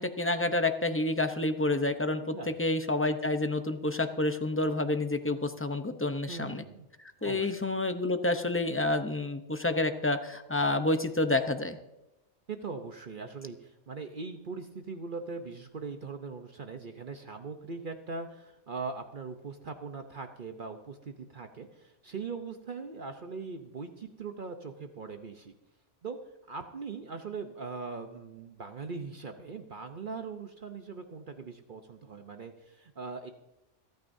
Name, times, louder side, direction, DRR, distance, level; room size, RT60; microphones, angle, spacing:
voice 1, 0.0-6.6 7.2-11.8, left 2 dB, 15° left, 7 dB, 0.5 m, -29 dB
voice 2, 2.2-2.6 6.3-6.9 7.2-7.6 12.5-25.5 26.0-26.2 26.5-33.3, right 4 dB, 50° right, 6 dB, 0.9 m, -40 dB
27.5 x 9.3 x 2.7 m, 0.93 s
omnidirectional pair, 1.2 m